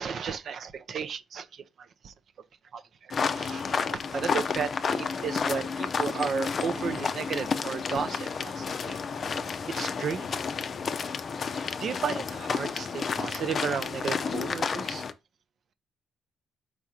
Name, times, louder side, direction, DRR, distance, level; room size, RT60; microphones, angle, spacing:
voice 1, 0.0-1.6 2.0-2.1 2.7-2.8 3.1-3.6 3.9-9.0 9.8-10.3 11.5-15.0, right 6 dB, 60° right, 0.5 m, -34 dB
sound 1, 3.1-15.1, left 5 dB, 45° left, 0.5 m, -31 dB
4.7 x 3.6 x 2.8 m
cardioid pair, 90°, 0 cm